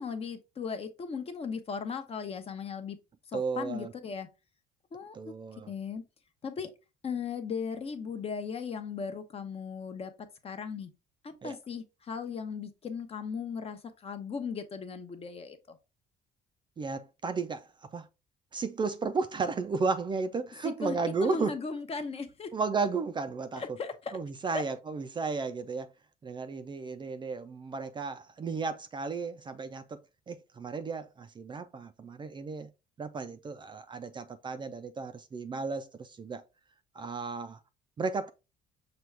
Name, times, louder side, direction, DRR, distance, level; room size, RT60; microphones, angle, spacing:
voice 1, 0.0-3.0 3.3-4.3 4.9-5.3 5.7-6.0 6.4-6.7 7.0-10.1 10.4-10.9 11.2-15.8 20.6-21.0 21.2-22.5 23.6-24.1 24.5-24.6, left 5 dB, 35° left, 0.7 m, -37 dB
voice 2, 3.3-3.9 5.1-5.7 11.4-11.5 16.8-18.1 18.5-21.5 22.5-23.6 24.1-25.9 26.2-30.0 30.3-32.7 33.0-36.4 36.9-37.6 38.0-38.3, right 4 dB, 30° right, 0.4 m, -34 dB
6.0 x 2.3 x 3.3 m
cardioid pair, 110°, 17 cm